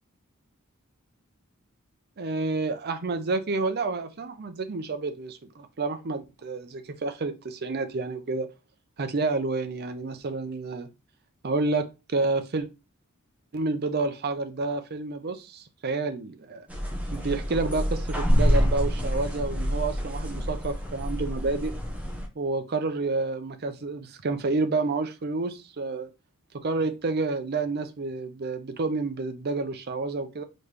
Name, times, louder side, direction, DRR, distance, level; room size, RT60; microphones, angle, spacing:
voice 1, 2.2-8.5 9.0-10.9 11.4-12.7 13.5-16.7 17.1-21.7 22.4-26.1 26.5-30.4, right 3 dB, 50° right, 0.6 m, -29 dB
sound 1, 16.7-22.3, equal, 5° right, 0.9 m, -27 dB
4.1 x 3.1 x 3.4 m
head